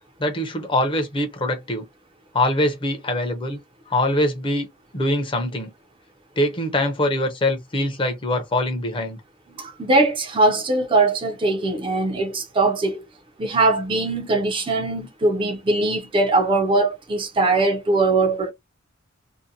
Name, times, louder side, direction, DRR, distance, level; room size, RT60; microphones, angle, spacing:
voice 1, 0.2-1.9 2.3-3.6 3.9-4.7 4.9-5.7 6.4-9.2, left 1 dB, 25° left, 0.6 m, -23 dB
voice 2, 9.5-13.0 13.4-18.5, right 2 dB, 25° right, 0.4 m, -21 dB
2.6 x 2.1 x 2.6 m
head